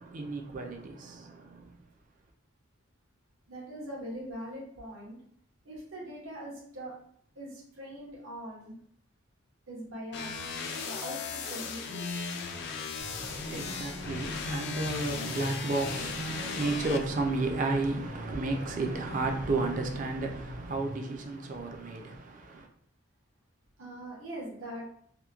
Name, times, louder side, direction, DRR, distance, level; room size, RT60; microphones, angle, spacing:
voice 1, 0.0-1.7 13.3-22.7, right 3 dB, 40° right, 0.4 m, -33 dB
voice 2, 3.5-5.2 5.6-7.0 7.3-8.8 9.7-10.4 10.8-12.1 23.8-24.9, right 1 dB, 85° right, 0.8 m, -42 dB
sound 1, 10.1-17.0, left 5 dB, 55° left, 0.3 m, -37 dB
sound 2, 13.0-20.9, left 1 dB, 85° left, 0.6 m, -43 dB
2.8 x 2.1 x 2.3 m
head